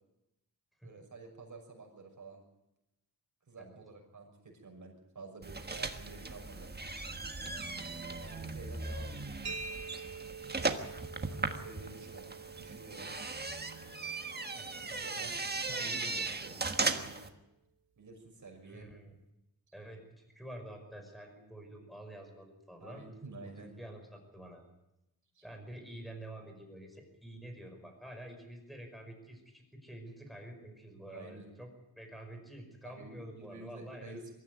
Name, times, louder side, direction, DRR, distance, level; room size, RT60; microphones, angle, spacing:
voice 1, 0.8-2.4 3.5-6.7 8.2-9.4 11.3-13.2 14.9-17.2 18.0-18.9 22.8-23.7 25.3-25.4 31.1-31.5 32.8-34.2, right 3 dB, 50° right, 2 dB, 6.3 m, -50 dB
sound 1, 5.4-17.3, right 3 dB, 25° right, 1.5 m, -38 dB
sound 2, 9.4-17.0, right 4 dB, 80° right, 2.1 m, -48 dB
voice 2, 14.5-14.9 18.6-19.2 19.7-23.0 23.4-24.6 25.4-31.7 32.0-34.2, right 1 dB, ahead, 4 dB, 5.4 m, -48 dB
22.5 x 14.0 x 9.4 m, 0.91 s
wide cardioid pair, 110°, 38 cm